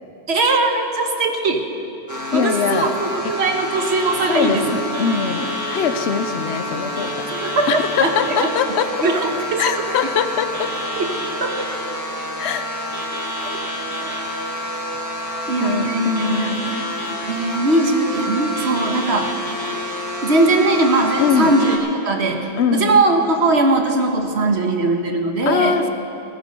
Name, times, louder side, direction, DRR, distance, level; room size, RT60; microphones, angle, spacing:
voice 1, 0.3-1.6 2.3-4.8 7.3-8.5 9.0-9.8 10.9-11.1 11.4-11.7 15.5-16.6 17.2-19.3 20.2-21.8 22.0-25.8, right 2 dB, 75° right, 4 dB, 1.5 m, -20 dB
sound 1, 2.1-21.8, equal, 15° right, 1.7 m, -28 dB
voice 2, 2.3-2.9 4.3-7.1 7.7-8.9 9.6-10.7 12.4-12.7 15.6-16.8 21.2-21.5 22.6-23.0 25.5-25.9, left 6 dB, 80° left, 9 dB, 1.0 m, -22 dB
15.5 x 14.0 x 5.3 m, 2.8 s
omnidirectional pair, 1.1 m